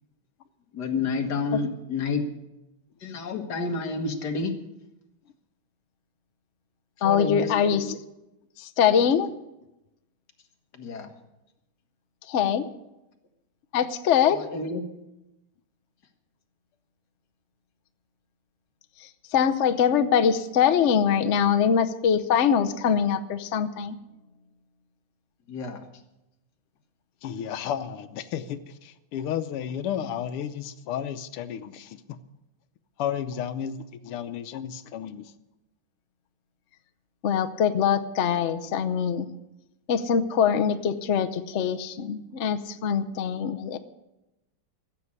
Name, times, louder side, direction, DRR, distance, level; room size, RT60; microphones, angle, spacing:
voice 1, 0.7-2.3 3.0-4.6 7.0-7.5 10.7-11.1 14.3-14.9 25.5-25.8, left 4 dB, 50° left, 4 dB, 2.0 m, -29 dB
voice 2, 7.0-8.0 8.6-9.3 12.3-12.6 13.7-14.4 19.3-24.0 37.2-39.3 39.9-43.8, left 8 dB, 70° left, 10 dB, 0.6 m, -23 dB
voice 3, 27.2-32.2 33.0-35.3 43.7-43.8, left 9 dB, 90° left, 11 dB, 1.7 m, -33 dB
14.5 x 7.7 x 9.6 m, 0.94 s
omnidirectional pair, 2.4 m